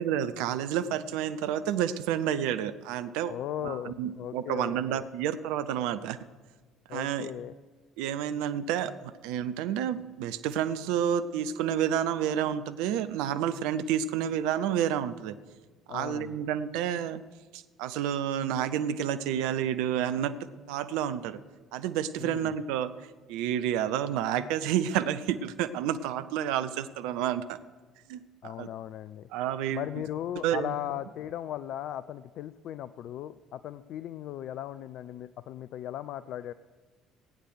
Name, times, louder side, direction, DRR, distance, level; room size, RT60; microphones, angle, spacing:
voice 1, 0.0-3.3 3.6-6.2 6.9-7.3 8.0-15.3 15.9-17.2 17.5-20.4 20.7-21.4 21.7-22.9 23.3-27.6 28.1-28.7 29.3-29.8 30.4-30.8, right 10 dB, 65° right, 12 dB, 0.6 m, -30 dB
voice 2, 3.3-5.1 6.9-7.5 15.9-16.5 22.2-22.5 28.4-29.3 29.7-36.5, left 11 dB, 55° left, 14 dB, 0.4 m, -37 dB
16.0 x 9.3 x 6.4 m, 1.4 s
figure-of-eight pair, 50°, 0 cm